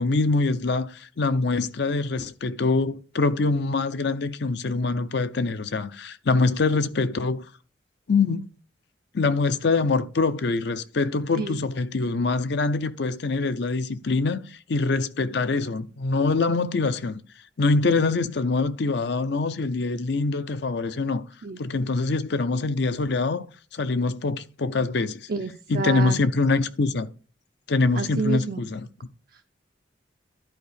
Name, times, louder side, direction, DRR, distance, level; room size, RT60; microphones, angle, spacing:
voice 1, 0.0-7.4 8.1-8.5 9.1-17.2 17.6-21.2 21.6-23.5 23.7-25.3 25.7-27.1 27.7-28.9, left 3 dB, 60° left, 0.5 m, -24 dB
voice 2, 25.3-26.2 28.0-28.6, right 4 dB, 50° right, 0.5 m, -29 dB
11.0 x 4.6 x 5.0 m
head